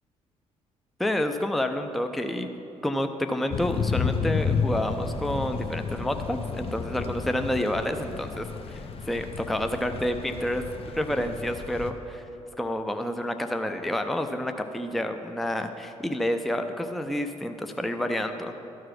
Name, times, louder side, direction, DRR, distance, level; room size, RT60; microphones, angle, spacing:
voice 1, 1.0-2.5 2.8-8.8 9.1-12.2 12.6-18.6, left 1 dB, ahead, 6 dB, 0.5 m, -29 dB
Thunder / Rain, 3.5-11.9, left 5 dB, 35° left, 0.7 m, -32 dB
13.0 x 4.7 x 6.0 m, 2.9 s
figure-of-eight pair, 45°, 17 cm